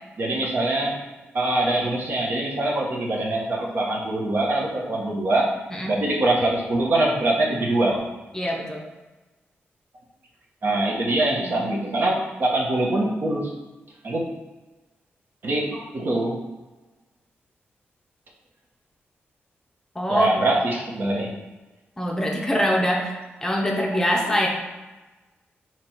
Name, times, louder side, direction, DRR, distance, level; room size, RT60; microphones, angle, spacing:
voice 1, 0.2-1.0 1.3-5.5 5.9-8.0 10.6-13.5 14.0-14.3 15.4-16.4 20.1-21.3 24.1-24.3, right 1 dB, 55° right, -2 dB, 0.9 m, -23 dB
voice 2, 8.3-8.8 20.0-20.3 22.0-24.5, equal, 10° left, -1 dB, 0.6 m, -24 dB
4.1 x 2.9 x 4.4 m, 1.2 s
wide cardioid pair, 130°, 4 cm